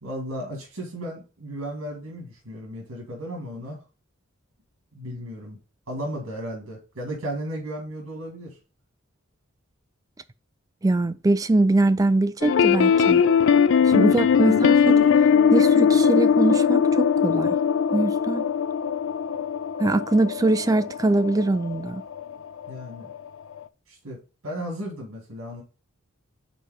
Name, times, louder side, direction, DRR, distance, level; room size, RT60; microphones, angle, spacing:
voice 1, 0.0-3.8 4.9-5.6 5.9-8.5 22.7-23.1 23.9-24.2 24.4-25.6, equal, 85° right, 2.2 m, -34 dB
voice 2, 10.8-13.2 13.8-15.1 15.5-17.6 17.9-18.5 19.8-22.0, right 2 dB, 15° right, 0.3 m, -22 dB
sound 1, 12.4-22.3 22.6-22.8 23.1-23.2 23.6-23.7, left 6 dB, 65° left, 0.4 m, -20 dB
5.3 x 4.3 x 4.9 m
head